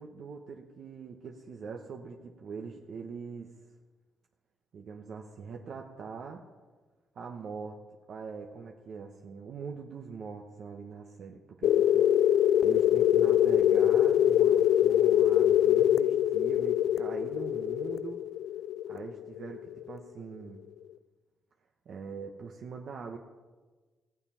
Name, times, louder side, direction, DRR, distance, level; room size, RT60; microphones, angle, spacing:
voice 1, 0.0-3.5 4.7-6.4 7.1-7.8 8.1-12.1 12.6-18.2 18.9-20.6 21.9-23.2, right 5 dB, 60° right, 2 dB, 1.0 m, -42 dB
sound 1, 11.6-20.0, left 11 dB, 70° left, 0.4 m, -24 dB
16.0 x 7.2 x 5.6 m, 1.3 s
cardioid pair, 90°, 0 cm